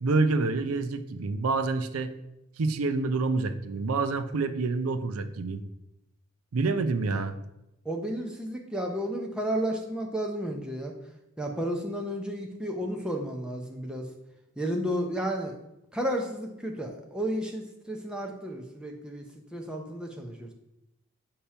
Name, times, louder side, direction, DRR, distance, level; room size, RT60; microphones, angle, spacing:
voice 1, 0.0-2.1 2.6-5.6 6.5-7.4, right 3 dB, 80° right, 10 dB, 0.5 m, -27 dB
voice 2, 7.8-11.0 11.4-14.1 14.6-15.6 15.9-19.2 19.5-20.5, equal, 5° right, 1 dB, 0.6 m, -32 dB
6.7 x 2.9 x 5.6 m, 0.88 s
head